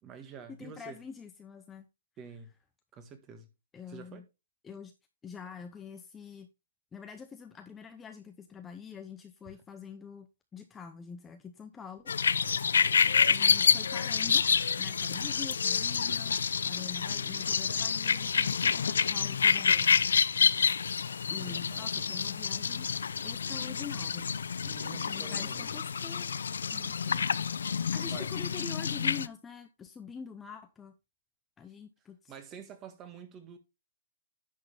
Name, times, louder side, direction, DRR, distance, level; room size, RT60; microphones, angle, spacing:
voice 1, 0.0-1.0 2.2-2.5 2.9-3.5 3.9-4.2 21.4-21.9 24.7-25.7 28.1-28.3 32.3-33.6, right 6 dB, 20° right, 1.6 m, -47 dB
voice 2, 0.6-1.9 3.7-4.2 4.6-4.9 5.2-6.5 6.9-12.4 13.3-14.4 14.8-16.4 16.6-19.9 21.3-22.9 23.2-24.4 24.9-26.3 26.7-27.2 27.9-30.9 31.6-32.3, left 6 dB, 10° left, 0.7 m, -45 dB
sound 1, 12.1-29.3, left 6 dB, 80° left, 0.5 m, -28 dB
10.5 x 6.4 x 3.3 m
hypercardioid pair, 155°, 0 cm